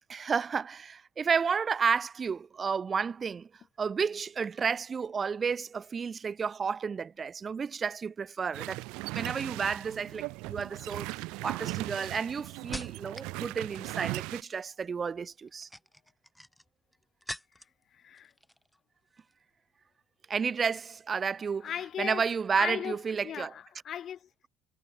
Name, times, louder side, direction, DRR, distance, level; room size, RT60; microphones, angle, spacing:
voice 1, 0.1-3.5 3.8-8.8 9.1-11.1 11.4-15.7 20.3-21.7 22.0-23.5, right 6 dB, 35° right, 0.7 m, -31 dB
sound 1, 8.5-14.4, right 24 dB, 80° right, 0.8 m, -38 dB
sound 2, 9.9-10.3 11.0-13.4 13.7-14.2 15.4-17.8 18.1-18.8 19.1-19.3, left 1 dB, 5° left, 5.2 m, -46 dB
voice 2, 17.9-18.3 21.6-22.2 22.6-23.0 23.2-24.3, left 9 dB, 50° left, 4.0 m, -37 dB
supercardioid pair, 85°, 0 cm